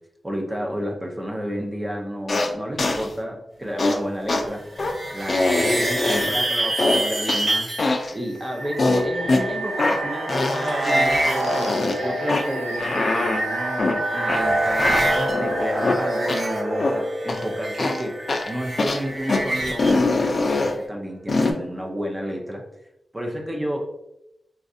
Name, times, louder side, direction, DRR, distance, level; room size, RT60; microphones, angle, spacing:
voice 1, 0.2-4.6 5.1-7.7 8.1-11.6 12.0-22.6 23.1-23.9, equal, 20° right, 1 dB, 0.6 m, -31 dB
sound 1, 2.3-2.5 2.8-3.1 3.8-4.0 4.3-4.4 4.8-4.9 5.3-6.4 6.8-7.5 7.8-8.1 8.8-9.4 9.8-10.0 10.3-12.0 12.3-12.4 12.8-13.4 13.8-14.0 14.3-14.4 14.8-16.0 16.3-16.4 16.8-16.9 17.3-17.4 17.8-18.0 18.3-18.5 18.8-19.0 19.3-19.4 19.8-20.7 21.3-21.5, left 2 dB, 50° left, 0.4 m, -23 dB
sound 2, 4.5-7.9 9.3-12.7 12.9-13.7 14.0-15.4 15.6-20.0, right 1 dB, 50° right, 1.1 m, -29 dB
sound 3, 8.3-19.1, right 1 dB, 75° right, 1.0 m, -27 dB
4.0 x 2.4 x 2.6 m, 0.84 s
wide cardioid pair, 115°, 0 cm